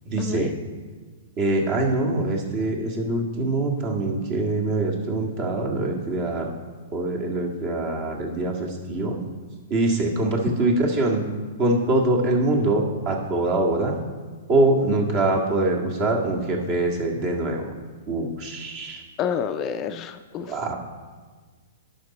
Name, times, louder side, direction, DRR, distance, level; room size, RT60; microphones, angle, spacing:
voice 1, 0.1-0.5 1.4-6.5 6.9-9.2 9.7-11.2 11.6-14.0 14.5-17.7 18.1-19.0 20.4-20.7, right 2 dB, 40° right, 1 dB, 1.8 m, -24 dB
voice 2, 19.2-20.5, left 7 dB, 30° left, 9 dB, 0.4 m, -28 dB
11.0 x 5.9 x 4.2 m, 1.4 s
hypercardioid pair, 120°, 0 cm